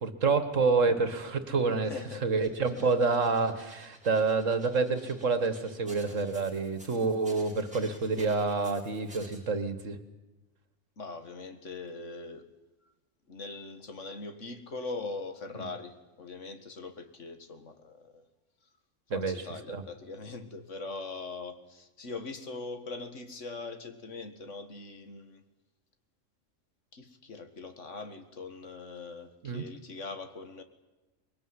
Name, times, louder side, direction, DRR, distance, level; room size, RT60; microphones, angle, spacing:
voice 1, 0.0-1.9 2.2-10.0 19.1-19.8 29.4-29.7, right 4 dB, 80° right, 10 dB, 2.1 m, -28 dB
voice 2, 1.8-2.3 2.8-2.9 11.0-12.5 13.3-18.2 19.1-25.4 26.9-30.6, left 3 dB, 70° left, 8 dB, 2.1 m, -41 dB
sound 1, 2.4-9.4, equal, 5° right, 4.9 m, -53 dB
23.5 x 21.0 x 9.8 m, 1.0 s
omnidirectional pair, 1.3 m